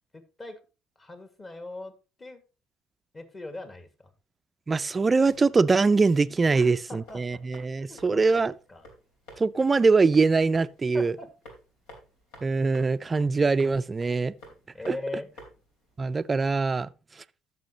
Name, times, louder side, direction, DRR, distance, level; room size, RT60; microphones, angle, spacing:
voice 1, 0.1-0.6 1.0-1.9 2.2-2.4 3.1-4.1 6.5-7.4 7.9-8.4 8.7-8.8 10.9-11.3 14.7-15.3, left 2 dB, 30° left, 1.8 m, -40 dB
voice 2, 4.7-8.5 9.4-11.1 12.4-14.3 14.9-15.0 16.0-16.9, right 4 dB, 30° right, 0.4 m, -23 dB
sound 1, 5.2-16.7, equal, 80° left, 2.7 m, -53 dB
13.5 x 6.1 x 2.8 m
hypercardioid pair, 65°, 0 cm